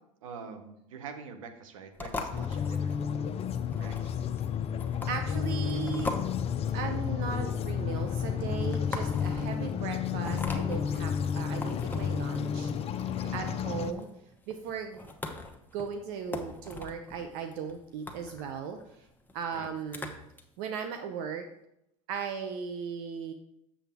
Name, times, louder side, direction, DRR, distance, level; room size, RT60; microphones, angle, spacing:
voice 1, 0.2-2.9 3.7-4.0 9.3-9.7 13.1-13.5 19.5-19.7, right 5 dB, 90° right, 7 dB, 1.0 m, -45 dB
sound 1, 2.0-20.4, left 2 dB, 10° left, 1.0 m, -42 dB
sound 2, 2.3-13.9, left 7 dB, 35° left, 0.6 m, -31 dB
voice 2, 5.1-6.1 6.7-14.1 14.5-15.1 15.7-18.8 19.3-20.1 20.6-21.5 22.1-23.3, right 6 dB, 65° right, 6 dB, 0.7 m, -37 dB
7.2 x 7.0 x 3.5 m, 0.79 s
hypercardioid pair, 90°, 17 cm